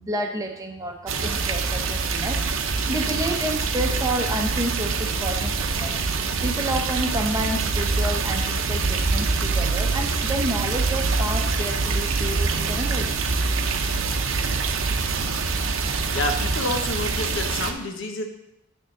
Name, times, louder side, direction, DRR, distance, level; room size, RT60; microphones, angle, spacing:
voice 1, 0.0-2.4 2.9-5.9 6.4-13.3, right 1 dB, 15° right, 3 dB, 0.9 m, -30 dB
sound 1, 1.1-17.7, right 4 dB, 75° right, 0.7 m, -25 dB
voice 2, 16.1-18.2, left 2 dB, 65° left, 5 dB, 0.9 m, -28 dB
9.2 x 3.7 x 6.6 m, 0.83 s
head